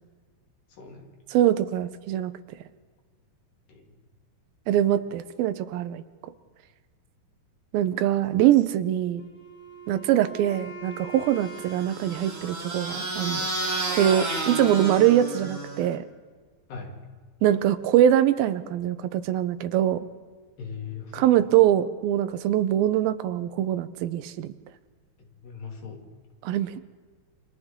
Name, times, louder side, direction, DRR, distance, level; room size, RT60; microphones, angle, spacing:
voice 1, 0.8-1.1 3.7-3.9 4.7-4.8 14.4-14.5 16.7-17.0 20.6-21.4 25.2-26.0, left 5 dB, 65° left, 1 dB, 4.1 m, -40 dB
voice 2, 1.3-2.3 4.7-6.0 7.7-9.3 9.9-13.4 14.0-16.0 17.4-20.0 21.1-24.5 26.4-26.8, right 11 dB, 80° right, 11 dB, 2.6 m, -23 dB
Wind instrument woodwind instrument, 9.2-13.2, right 3 dB, 85° left, 4.9 m, -43 dB
sound 1, 11.4-16.0, right 2 dB, 20° right, 2.9 m, -31 dB
29.0 x 25.5 x 3.7 m, 1.5 s
omnidirectional pair, 4.4 m